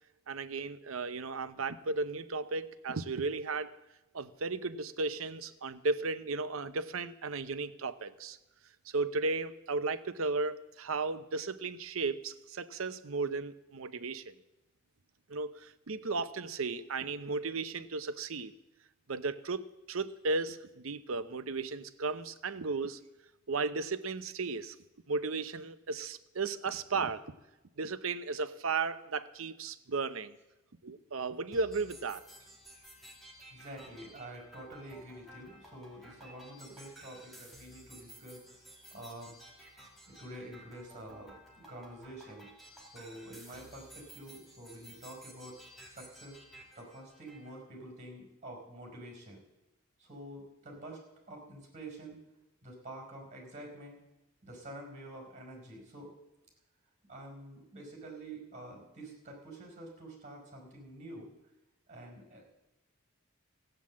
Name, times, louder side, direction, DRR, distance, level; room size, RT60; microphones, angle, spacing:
voice 1, 0.3-3.7 4.1-8.4 8.9-14.3 15.3-18.5 19.1-23.0 23.5-24.8 25.1-27.2 27.8-30.3 30.8-32.2, right 3 dB, 80° right, 12 dB, 0.8 m, -35 dB
sound 1, 31.5-47.5, equal, ahead, 2.6 m, -54 dB
voice 2, 33.5-38.6 38.9-39.3 40.1-42.5 42.9-45.6 45.9-46.4 46.7-49.4 50.0-52.2 52.6-54.0 54.4-56.1 57.1-61.3 61.9-62.6, right 1 dB, 35° right, 2 dB, 4.7 m, -48 dB
15.0 x 9.1 x 7.4 m, 0.97 s
head